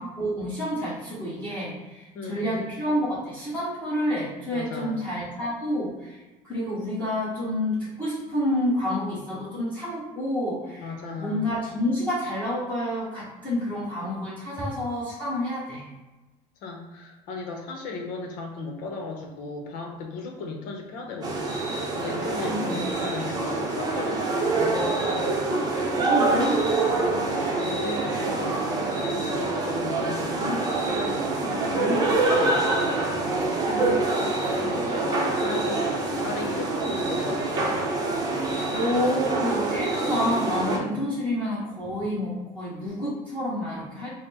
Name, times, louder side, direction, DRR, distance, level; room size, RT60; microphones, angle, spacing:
voice 1, 0.0-15.8 22.4-22.8 25.5-26.7 30.3-33.0 33.7-34.0 38.7-44.1, left 1 dB, 10° left, -11 dB, 1.2 m, -29 dB
voice 2, 2.1-2.5 4.5-5.0 10.8-11.5 16.6-21.4 22.0-25.0 27.0-30.4 33.1-37.8 41.1-41.2, left 3 dB, 65° left, 2 dB, 0.9 m, -36 dB
sound 1, 21.2-40.8, right 2 dB, 25° right, 0.7 m, -26 dB
4.2 x 2.1 x 4.2 m, 1.1 s
cardioid pair, 145°, 16 cm